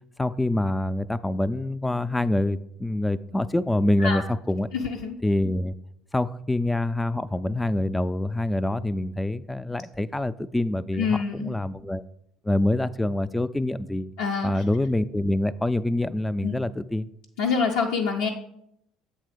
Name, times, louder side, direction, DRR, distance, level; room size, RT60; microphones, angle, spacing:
voice 1, 0.2-4.2 4.5-4.7 5.2-5.7 6.1-11.1 11.3-12.0 12.4-14.1 14.4-17.1, left 1 dB, 10° left, 15 dB, 0.3 m, -25 dB
voice 2, 4.7-5.2 10.9-11.5 14.2-14.6 16.4-16.5 17.4-18.3, left 5 dB, 85° left, -1 dB, 0.5 m, -26 dB
7.6 x 3.6 x 5.0 m, 0.78 s
hypercardioid pair, 70°, 0 cm